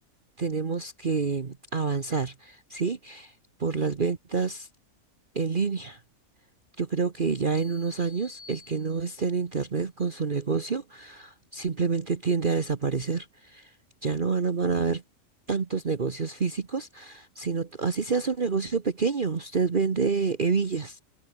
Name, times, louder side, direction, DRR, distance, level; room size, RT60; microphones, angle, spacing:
voice 1, 0.4-3.3 3.6-4.7 5.3-6.0 6.8-13.7 14.0-15.0 15.5-21.0, right 5 dB, 40° right, 1.2 m, -28 dB
sound 1, 7.5-9.4, left 3 dB, 45° left, 2.7 m, -51 dB
omnidirectional pair, 1.5 m